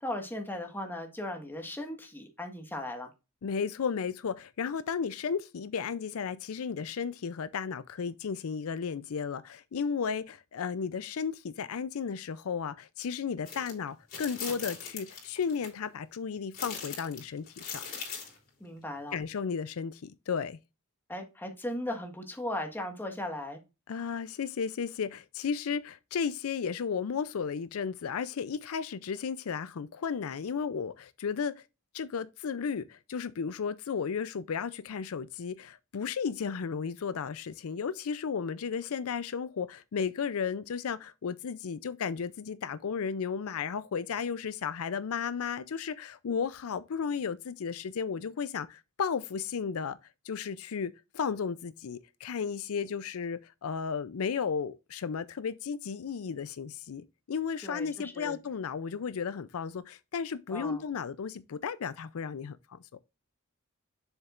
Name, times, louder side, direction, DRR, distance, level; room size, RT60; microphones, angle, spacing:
voice 1, 0.0-3.1 18.6-19.2 21.1-23.6 57.6-58.4 60.5-60.8, left 1 dB, 10° left, 1.5 m, -37 dB
voice 2, 3.4-17.8 19.1-20.6 23.9-31.6 31.9-50.0 50.2-62.8, left 6 dB, 75° left, 0.4 m, -34 dB
sound 1, 13.5-13.7 14.1-15.7 16.5-18.4, left 6 dB, 45° left, 3.7 m, -40 dB
7.2 x 6.6 x 2.4 m
head